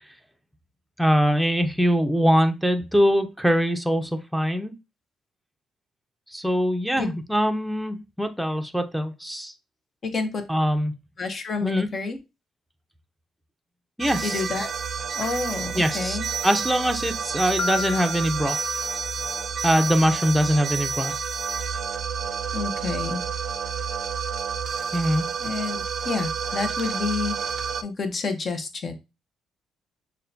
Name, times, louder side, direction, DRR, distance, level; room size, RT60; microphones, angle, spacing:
voice 1, 1.0-4.7 6.3-9.5 10.5-10.9 11.6-11.9 14.0-14.4 15.7-18.6 19.6-21.1 24.9-25.2, equal, ahead, 6 dB, 0.6 m, -23 dB
voice 2, 10.0-10.4 11.2-12.2 14.2-14.7 15.1-16.3 22.5-23.2 25.4-27.5 27.8-28.9, left 4 dB, 45° left, 7 dB, 0.8 m, -29 dB
sound 1, 14.0-27.8, right 6 dB, 50° right, 0.3 m, -30 dB
Piano, 17.6-19.5, left 3 dB, 80° left, 0.4 m, -34 dB
6.4 x 2.2 x 2.7 m, 0.25 s
cardioid pair, 90°, 0 cm